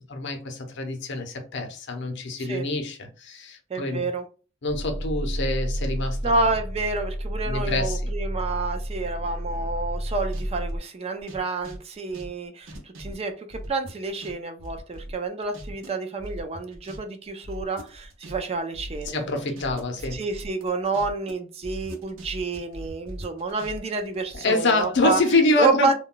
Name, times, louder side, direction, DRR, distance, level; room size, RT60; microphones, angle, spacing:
voice 1, 0.0-4.1 4.6-6.4 7.4-8.0 19.0-20.2 24.3-25.9, left 2 dB, 60° left, 0.6 m, -26 dB
voice 2, 3.7-4.2 6.2-19.3 20.1-25.2 25.6-25.9, right 3 dB, 30° right, 0.4 m, -29 dB
sound 1, 4.7-10.8, equal, 50° right, 0.9 m, -30 dB
sound 2, 9.0-10.7 11.2-14.3 14.6-15.9 16.2-17.0 17.3-21.3 21.6-24.4, equal, 80° right, 0.8 m, -40 dB
2.2 x 2.1 x 3.7 m
head